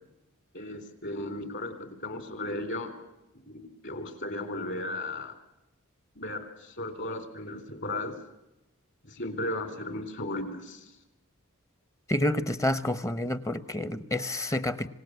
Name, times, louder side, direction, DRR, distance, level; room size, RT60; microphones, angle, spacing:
voice 1, 0.5-2.9 3.5-5.3 6.2-8.2 9.0-10.8, left 1 dB, 55° left, 8 dB, 3.7 m, -35 dB
voice 2, 12.1-14.9, left 1 dB, 15° left, 13 dB, 0.8 m, -29 dB
26.5 x 18.0 x 8.0 m, 0.93 s
head